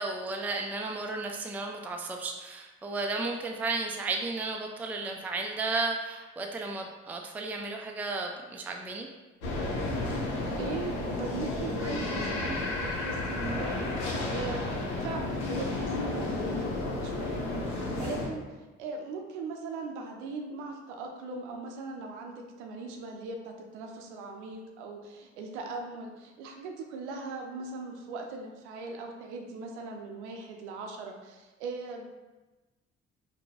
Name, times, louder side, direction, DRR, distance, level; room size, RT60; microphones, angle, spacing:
voice 1, 0.0-9.1, right 3 dB, 5° right, 2 dB, 0.4 m, -33 dB
sound 1, 9.4-18.3, left 2 dB, 75° left, 0.7 m, -32 dB
voice 2, 10.6-14.7 15.0-18.4 18.8-32.0, right 3 dB, 75° right, 2 dB, 0.5 m, -39 dB
5.1 x 2.2 x 2.8 m, 1.2 s
figure-of-eight pair, 40°, 34 cm